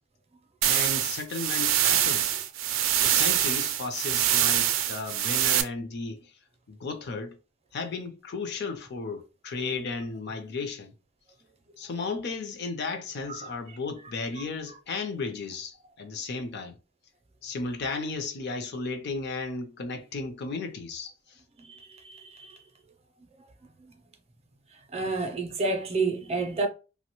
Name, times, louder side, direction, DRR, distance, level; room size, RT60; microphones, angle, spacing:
voice 1, 0.6-2.4 3.0-6.2 6.7-7.4 7.7-10.9 11.8-16.8 17.4-21.4, left 4 dB, 60° left, 0.5 m, -34 dB
sound 1, 0.6-5.6, right 11 dB, 90° right, 0.4 m, -24 dB
voice 2, 22.0-22.6 24.9-26.7, right 3 dB, 30° right, 0.5 m, -29 dB
2.8 x 2.1 x 2.9 m
head